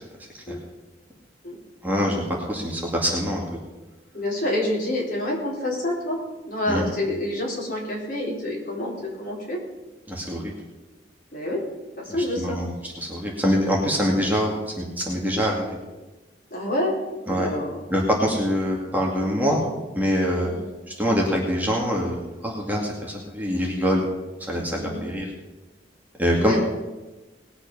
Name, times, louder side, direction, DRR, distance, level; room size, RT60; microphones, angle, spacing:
voice 1, 1.8-3.4 6.7-6.8 10.1-10.5 12.4-12.7 13.1-15.8 17.3-17.5 17.9-19.6 20.0-20.5 21.0-24.0 24.5-25.3 26.2-26.6, equal, 10° right, -2 dB, 2.2 m, -24 dB
voice 2, 4.1-6.2 6.5-9.6 11.3-11.6 12.0-12.6 16.5-17.0 17.3-17.8 19.5-19.7 20.4-20.6 24.8-25.0 26.3-26.6, left 1 dB, 45° left, -3 dB, 4.4 m, -28 dB
19.5 x 8.2 x 5.6 m, 1.2 s
head